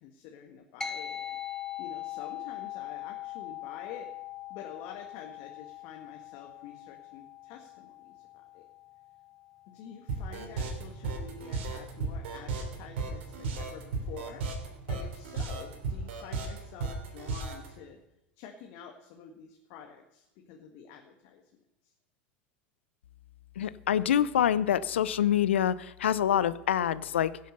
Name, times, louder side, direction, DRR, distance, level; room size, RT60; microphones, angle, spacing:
voice 1, 0.0-1.4 1.8-4.1 4.5-8.7 9.7-14.4 14.9-18.0 18.4-21.4, left 7 dB, 60° left, 2 dB, 1.8 m, -48 dB
sound 1, 0.8-10.5, left 10 dB, 10° left, 1.2 m, -42 dB
sound 2, 10.1-17.7, right 4 dB, 70° right, 3.2 m, -34 dB
voice 2, 23.6-27.4, left 10 dB, 80° left, 17 dB, 0.6 m, -26 dB
16.0 x 7.7 x 6.8 m, 0.88 s
hypercardioid pair, 85°, 6 cm